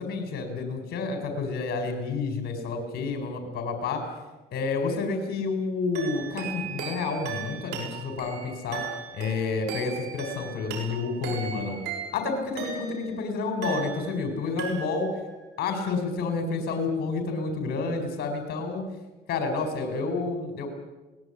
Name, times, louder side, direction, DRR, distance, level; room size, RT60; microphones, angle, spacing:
voice 1, 0.0-4.0 4.5-8.8 9.1-11.8 12.1-15.1 15.6-18.8 19.3-20.7, left 4 dB, 65° left, 6 dB, 4.6 m, -29 dB
sound 1, 5.9-13.2 13.6-14.3 14.6-15.2, right 6 dB, 85° right, 6.8 m, -37 dB
22.0 x 19.0 x 10.0 m, 1.1 s
cardioid pair, 110°, 17 cm